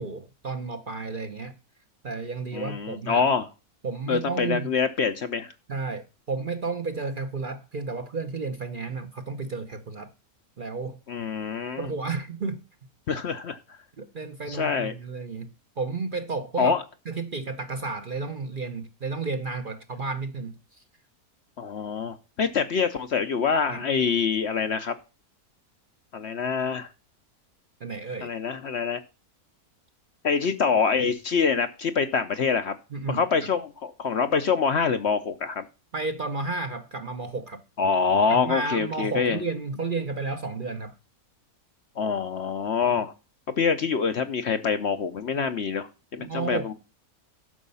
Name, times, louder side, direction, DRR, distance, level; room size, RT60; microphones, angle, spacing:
voice 1, 0.0-1.6 2.0-3.2 3.8-4.7 5.7-10.1 10.6-11.0 11.8-12.6 14.0-15.5 15.8-16.8 17.1-20.6 23.7-23.8 27.8-28.3 32.9-33.2 35.9-37.6 38.3-40.9 46.2-46.7, right 4 dB, 45° right, 0.8 m, -32 dB
voice 2, 2.5-3.5 4.1-5.5 11.1-11.9 13.1-13.6 14.5-14.9 16.6-16.8 21.6-24.9 26.1-26.9 28.2-29.0 30.2-32.7 33.1-35.6 37.8-39.4 42.0-43.1 43.6-46.7, left 5 dB, 55° left, 0.8 m, -25 dB
11.0 x 6.4 x 5.4 m
omnidirectional pair, 1.6 m